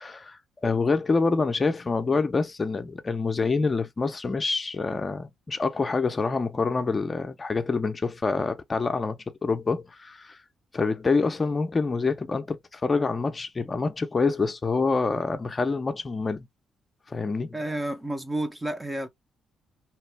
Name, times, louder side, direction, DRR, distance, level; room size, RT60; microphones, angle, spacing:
voice 1, 0.0-10.4 10.7-16.5 17.1-17.6, left 4 dB, 30° left, 0.5 m, -26 dB
voice 2, 17.5-19.1, right 1 dB, 15° right, 0.6 m, -30 dB
2.9 x 2.3 x 3.3 m
cardioid pair, 90°, 0 cm